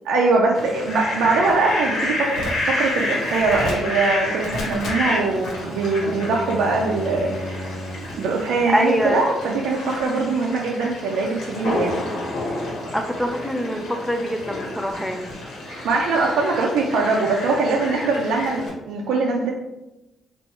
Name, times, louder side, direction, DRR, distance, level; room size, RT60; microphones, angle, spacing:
voice 1, 0.0-2.3 2.7-12.0 15.7-19.5, right 3 dB, 85° right, -1 dB, 0.5 m, -22 dB
Fowl, 0.5-18.7, left 1 dB, 70° left, 1.3 m, -29 dB
Bowed string instrument, 5.1-8.3, equal, 50° left, 0.5 m, -35 dB
voice 2, 8.7-9.2 12.9-15.3, equal, 5° left, 4 dB, 0.6 m, -24 dB
3.2 x 2.6 x 4.4 m, 0.95 s
cardioid pair, 90°, 0 cm